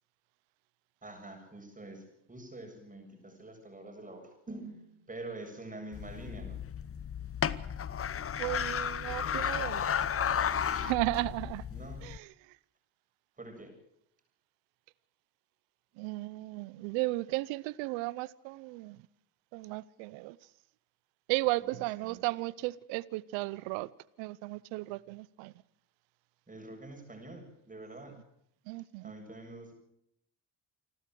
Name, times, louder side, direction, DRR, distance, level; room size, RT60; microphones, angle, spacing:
voice 1, 1.0-6.6 11.7-12.0 13.4-13.7 21.6-22.2 26.5-28.2 29.0-29.7, right 2 dB, 20° right, 7.8 m, -46 dB
sound 1, 5.9-12.2, left 8 dB, 30° left, 1.0 m, -33 dB
voice 2, 8.4-10.0 10.6-11.7 12.0-12.3 16.0-19.0 19.5-20.4 21.3-23.9 24.2-25.5 28.7-29.1, right 21 dB, 85° right, 0.8 m, -35 dB
27.5 x 13.0 x 7.8 m
supercardioid pair, 95°, 44 cm